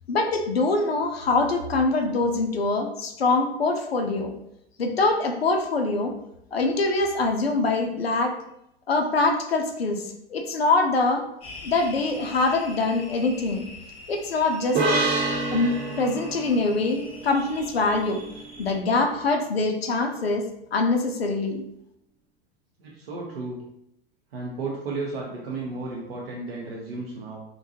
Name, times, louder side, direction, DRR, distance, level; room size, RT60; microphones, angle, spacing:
voice 1, 0.1-4.3 4.8-6.1 6.5-8.3 8.9-11.2 11.6-13.6 14.1-14.8 15.5-18.2 18.6-21.6, left 3 dB, 90° left, 5 dB, 0.4 m, -24 dB
sound 1, 11.4-18.7, left 2 dB, 20° left, 0.7 m, -44 dB
sound 2, 14.7-18.2, right 2 dB, 40° right, 0.8 m, -28 dB
voice 2, 22.8-23.7 24.3-27.4, right 3 dB, 80° right, -3 dB, 0.6 m, -33 dB
2.6 x 2.2 x 2.7 m, 0.80 s
figure-of-eight pair, 85°, 29 cm